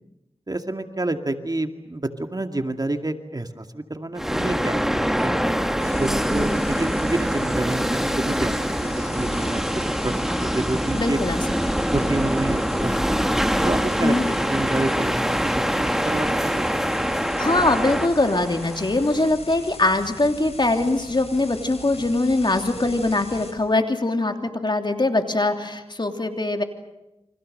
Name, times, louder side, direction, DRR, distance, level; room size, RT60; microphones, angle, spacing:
voice 1, 0.5-5.4 5.8-9.6 9.9-11.2 11.9-13.1 13.6-16.8, right 2 dB, 35° right, 6 dB, 2.2 m, -28 dB
sound 1, 4.2-19.3, equal, 5° right, 2.0 m, -24 dB
sound 2, 5.8-23.5, left 3 dB, 75° left, 6.1 m, -40 dB
voice 2, 10.9-11.4 14.0-14.3 17.4-26.6, left 2 dB, 45° left, 5 dB, 3.2 m, -22 dB
29.5 x 25.5 x 6.7 m, 0.95 s
cardioid pair, 45°, 11 cm